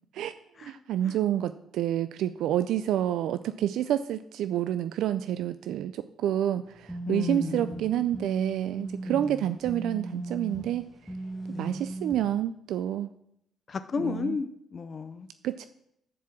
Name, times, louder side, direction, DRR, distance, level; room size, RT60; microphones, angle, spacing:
voice 1, 0.6-10.9 11.6-13.1 14.0-14.4 15.4-15.7, right 11 dB, 85° right, 12 dB, 0.3 m, -28 dB
sound 1, 6.7-12.4, right 2 dB, ahead, 1.4 m, -38 dB
voice 2, 7.1-7.9 9.0-9.4 11.5-11.9 13.7-15.3, left 5 dB, 45° left, 10 dB, 0.5 m, -34 dB
10.5 x 4.7 x 7.4 m, 0.77 s
cardioid pair, 90°, 0 cm